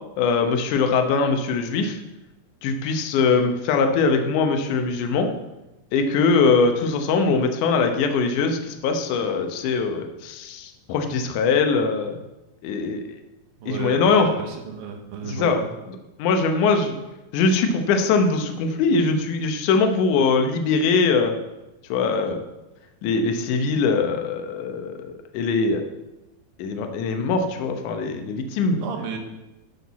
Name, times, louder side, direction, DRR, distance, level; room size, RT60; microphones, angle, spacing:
voice 1, 0.2-2.0 2.6-5.3 5.9-12.2 12.6-13.2 13.7-14.3 15.2-15.6 15.9-17.0 17.3-21.4 21.9-22.4 23.0-25.9 26.6-28.8, left 4 dB, 70° left, 6 dB, 2.1 m, -22 dB
voice 2, 13.6-15.7 28.8-29.2, right 5 dB, 70° right, 4 dB, 2.7 m, -33 dB
12.5 x 6.5 x 4.1 m, 1.0 s
omnidirectional pair, 4.4 m